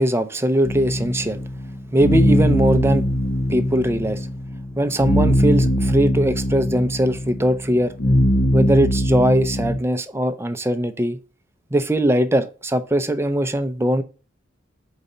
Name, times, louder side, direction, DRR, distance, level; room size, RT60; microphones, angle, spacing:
voice 1, 0.0-1.4 1.9-3.0 3.5-4.3 4.8-7.9 8.5-11.2 11.7-14.0, right 1 dB, 10° right, 9 dB, 0.5 m, -20 dB
sound 1, 0.6-9.8, equal, 50° left, 0.6 m, -21 dB
5.0 x 4.0 x 5.4 m, 0.36 s
head